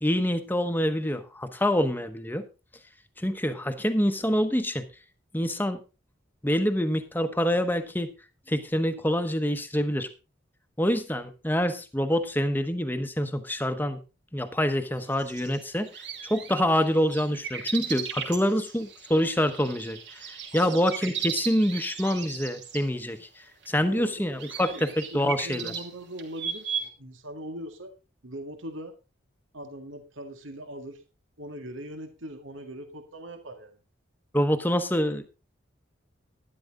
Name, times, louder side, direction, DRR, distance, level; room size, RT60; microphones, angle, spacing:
voice 1, 0.0-2.4 3.2-4.9 5.3-5.8 6.4-8.1 8.5-10.1 10.8-14.0 14.3-15.9 16.2-25.7 34.3-35.3, equal, 10° left, 9 dB, 1.1 m, -26 dB
sound 1, 15.0-22.8 23.6-23.7 24.4-26.9, right 7 dB, 60° right, 2.9 m, -37 dB
voice 2, 20.5-20.8 23.8-24.1 24.7-27.9 28.2-28.9 29.5-31.0 31.4-33.7, right 1 dB, 80° right, 6 dB, 2.1 m, -40 dB
12.0 x 11.5 x 3.7 m, 0.30 s
head